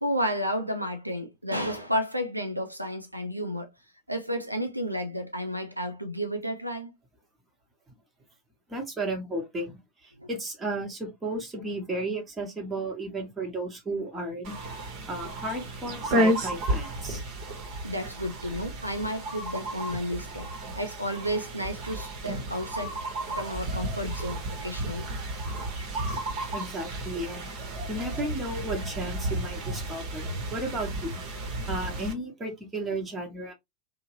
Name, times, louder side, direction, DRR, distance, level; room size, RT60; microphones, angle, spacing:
voice 1, 0.0-3.7 4.1-7.0 10.2-10.3 17.8-23.0 23.3-25.1 31.5-31.7, equal, 85° right, 0.4 m, -32 dB
voice 2, 8.7-14.5 15.1-17.2 26.5-27.5 27.9-31.2 31.7-33.5, right 2 dB, 15° right, 1.1 m, -34 dB
sound 1, 14.4-32.1, right 1 dB, 40° right, 0.9 m, -32 dB
2.8 x 2.1 x 3.0 m
figure-of-eight pair, 90°, 0 cm